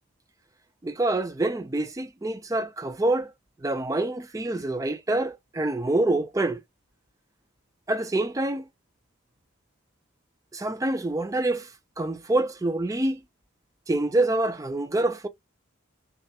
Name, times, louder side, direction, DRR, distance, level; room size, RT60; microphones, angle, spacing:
voice 1, 0.8-3.3 3.6-6.6 7.9-8.7 10.5-11.7 12.0-13.2 13.9-15.3, right 2 dB, 15° right, 0.3 m, -26 dB
2.3 x 2.0 x 2.8 m
head